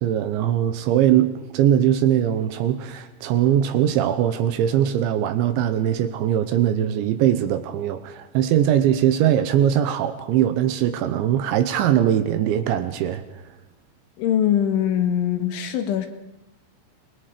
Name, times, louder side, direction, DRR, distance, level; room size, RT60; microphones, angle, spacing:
voice 1, 0.0-13.3, right 10 dB, 80° right, 10 dB, 3.0 m, -21 dB
voice 2, 14.2-16.1, left 10 dB, 75° left, 7 dB, 3.8 m, -22 dB
26.5 x 20.5 x 5.0 m, 0.91 s
omnidirectional pair, 5.8 m